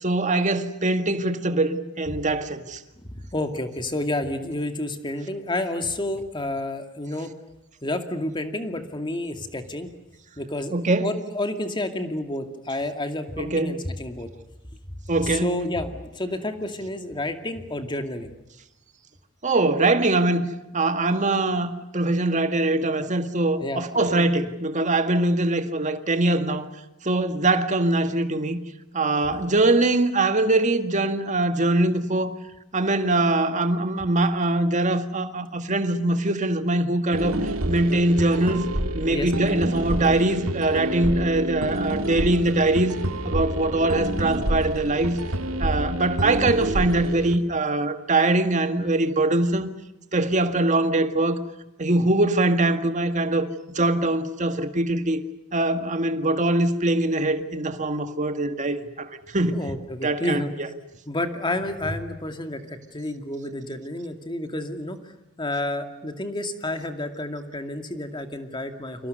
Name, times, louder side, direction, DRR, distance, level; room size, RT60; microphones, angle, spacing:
voice 1, 0.0-2.8 10.7-11.1 13.4-13.8 15.1-15.5 19.4-20.4 20.7-26.6 27.0-28.6 28.9-32.4 32.7-38.6 38.9-43.0 43.2-45.2 45.6-49.7 50.1-51.4 51.8-53.5 53.8-55.2 55.5-59.6 60.0-60.7, right 2 dB, 35° right, 1.9 m, -22 dB
voice 2, 3.3-7.3 7.8-9.9 10.4-14.3 15.2-18.3 23.6-24.3 39.1-39.3 59.5-60.5 61.1-65.0 65.4-69.1, left 1 dB, 25° left, 2.4 m, -30 dB
sound 1, 37.1-47.4, right 1 dB, 85° right, 2.2 m, -28 dB
29.5 x 25.0 x 6.9 m
head